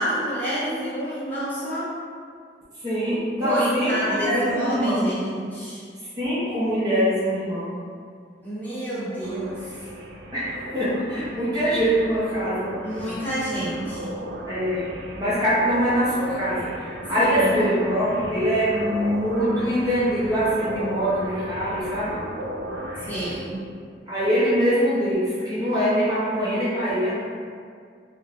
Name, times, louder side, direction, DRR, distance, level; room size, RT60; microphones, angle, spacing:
voice 1, 0.0-2.0 3.4-5.8 8.4-9.8 12.8-14.2 17.1-17.6 23.0-23.6, equal, 10° left, -12 dB, 0.8 m, -28 dB
voice 2, 2.8-5.1 6.2-7.7 10.3-12.8 14.5-14.9 15.1-16.7 17.1-22.2 24.1-27.2, equal, 20° right, -11 dB, 0.5 m, -23 dB
sound 1, 9.2-23.4, right 1 dB, 80° right, 0.3 m, -36 dB
2.3 x 2.0 x 3.0 m, 2.1 s
head